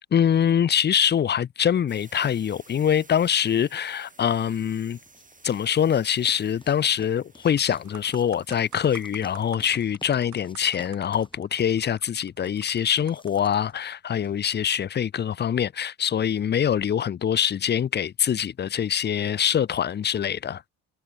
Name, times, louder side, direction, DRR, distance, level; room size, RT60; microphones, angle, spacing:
voice 1, 0.1-5.0 5.4-20.6, left 9 dB, 30° left, 0.5 m, -24 dB
sound 1, 1.9-9.6, right 3 dB, 20° right, 5.5 m, -55 dB
sound 2, 4.7-14.4, left 2 dB, 15° left, 2.7 m, -52 dB
sound 3, 6.9-7.0 7.4-13.8 14.5-14.6, right 12 dB, 50° right, 1.0 m, -50 dB
hypercardioid pair, 60°, 38 cm